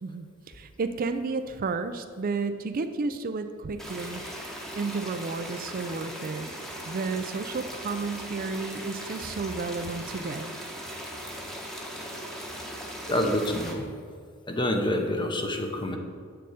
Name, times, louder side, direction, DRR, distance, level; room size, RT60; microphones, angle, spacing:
voice 1, 0.0-4.2 4.8-6.5 6.8-10.5, right 4 dB, 40° right, 9 dB, 0.4 m, -32 dB
sound 1, 3.8-13.7, equal, ahead, 1.0 m, -39 dB
voice 2, 13.1-13.8 14.5-16.0, left 1 dB, 20° left, 4 dB, 0.8 m, -27 dB
7.8 x 6.8 x 4.9 m, 2.1 s
head